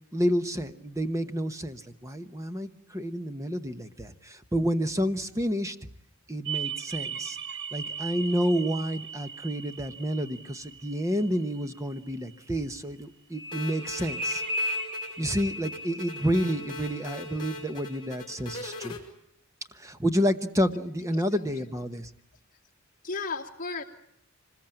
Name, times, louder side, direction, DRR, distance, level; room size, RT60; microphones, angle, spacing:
voice 1, 0.1-5.9 6.3-7.4 7.7-14.4 15.2-19.0 19.7-22.1, equal, 15° right, 9 dB, 1.0 m, -29 dB
sound 1, 6.5-12.0 13.3-18.1, right 2 dB, 50° right, 1.8 m, -37 dB
sound 2, 13.5-19.0, left 1 dB, 20° left, 5.3 m, -41 dB
voice 2, 21.1-21.5 23.0-23.8, left 4 dB, 35° left, 0 dB, 2.7 m, -34 dB
25.5 x 20.5 x 9.0 m, 0.75 s
head